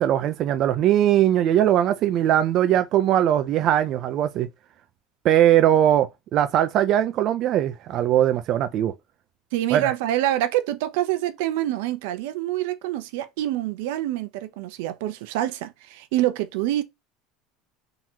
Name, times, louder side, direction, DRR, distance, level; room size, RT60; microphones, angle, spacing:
voice 1, 0.0-4.5 5.2-8.9 9.7-9.9, right 11 dB, 45° right, 0.5 m, -20 dB
voice 2, 9.5-16.8, right 13 dB, 75° right, 0.7 m, -26 dB
3.8 x 3.0 x 4.4 m
supercardioid pair, 140°, 0 cm